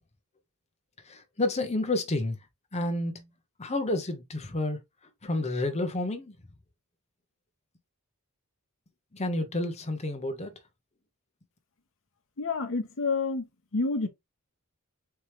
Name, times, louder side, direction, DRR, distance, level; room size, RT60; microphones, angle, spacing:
voice 1, 1.1-2.4 2.7-3.2 3.6-4.8 5.2-6.3 9.1-10.5, left 2 dB, 30° left, 0.9 m, -30 dB
voice 2, 12.4-13.5 13.7-14.1, left 3 dB, 60° left, 0.9 m, -28 dB
4.5 x 3.1 x 3.3 m
head